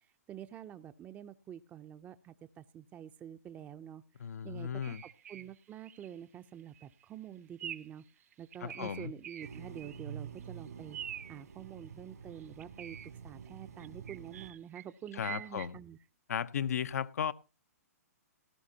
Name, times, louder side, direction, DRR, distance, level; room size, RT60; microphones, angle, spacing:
voice 1, 0.3-4.0 4.4-8.0 8.4-11.0 11.3-13.0 13.2-16.0, right 10 dB, 20° right, 0.6 m, -47 dB
voice 2, 4.2-5.0 8.6-9.1 15.1-15.8 16.3-17.3, left 8 dB, 70° left, 0.7 m, -35 dB
sound 1, 4.8-5.5 5.8-6.1 6.6-6.8 7.6-8.0 8.3-10.1 10.4-10.5 10.9-11.4 12.4-13.1 13.8-15.7, right 10 dB, 65° right, 0.9 m, -45 dB
sound 2, 9.4-14.5, right 7 dB, 85° right, 3.4 m, -48 dB
18.0 x 12.5 x 2.8 m
hypercardioid pair, 135°, 9 cm